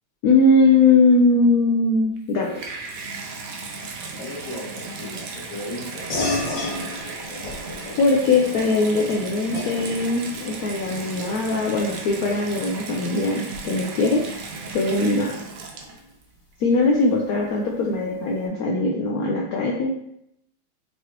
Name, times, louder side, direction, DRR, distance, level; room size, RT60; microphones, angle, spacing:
voice 1, 0.2-2.5 8.0-14.2 14.7-15.4 16.6-20.0, left 3 dB, 85° left, -1 dB, 0.8 m, -20 dB
Water tap faucet / Bathtub (filling or washing), 2.2-16.2 17.0-17.1, right 4 dB, 75° right, 0.8 m, -36 dB
voice 2, 4.2-6.4, left 1 dB, 55° left, -10 dB, 1.6 m, -36 dB
sound 1, 6.1-16.0, left 2 dB, 70° left, 1.7 m, -34 dB
4.8 x 3.0 x 2.9 m, 0.75 s
omnidirectional pair, 2.1 m